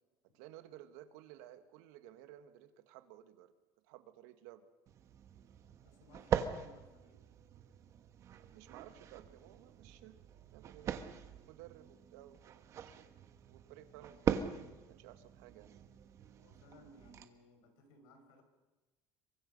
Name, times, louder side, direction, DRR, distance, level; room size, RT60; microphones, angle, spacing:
voice 1, 0.3-3.5 3.8-4.7 8.4-10.2 10.5-11.1 11.4-13.1 13.4-14.5 14.9-15.7, right 13 dB, 85° right, 9 dB, 1.9 m, -56 dB
sound 1, 4.9-17.2, right 8 dB, 35° right, 1.4 m, -42 dB
voice 2, 5.8-7.3 16.4-18.4, left 1 dB, 70° left, 5 dB, 5.7 m, -62 dB
27.0 x 23.5 x 5.5 m, 1.1 s
cardioid pair, 155°, 8 cm